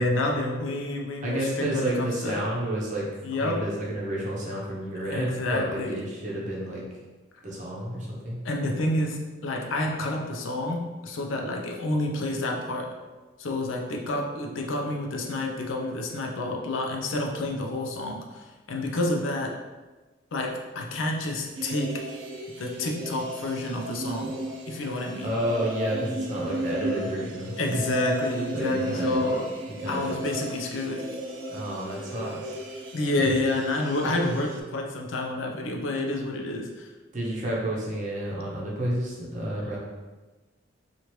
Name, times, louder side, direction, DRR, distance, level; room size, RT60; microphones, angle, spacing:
voice 1, 0.0-2.5 3.2-3.7 5.1-6.0 8.4-12.9 13.4-19.6 20.3-22.1 22.5-24.3 24.7-25.3 27.6-29.5 29.9-31.1 32.9-36.9, left 2 dB, 90° left, 1 dB, 0.5 m, -29 dB
voice 2, 1.2-3.1 3.3-6.8 7.4-8.4 25.2-27.8 28.5-29.2 29.7-30.2 31.5-32.6 37.1-39.8, right 1 dB, 40° right, -4 dB, 0.7 m, -31 dB
sound 1, 21.5-34.6, right 1 dB, 70° right, 0.5 m, -34 dB
2.9 x 2.4 x 3.0 m, 1.2 s
head